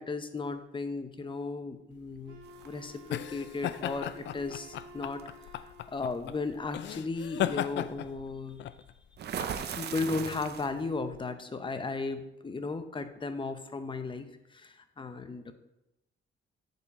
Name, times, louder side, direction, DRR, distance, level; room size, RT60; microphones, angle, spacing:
voice 1, 0.0-5.2 5.5-8.6 9.7-14.3 14.5-15.5, left 3 dB, 25° left, 9 dB, 0.8 m, -35 dB
sound 1, 2.0-11.2, left 11 dB, 65° left, 0.4 m, -37 dB
Wind instrument woodwind instrument, 2.3-6.4, right 1 dB, 85° right, 1.3 m, -52 dB
sound 2, 2.5-3.2 4.5-4.7 5.2-5.4 9.2-10.9, right 8 dB, 55° right, 0.7 m, -37 dB
9.4 x 4.6 x 4.3 m, 0.90 s
cardioid pair, 90°, 20 cm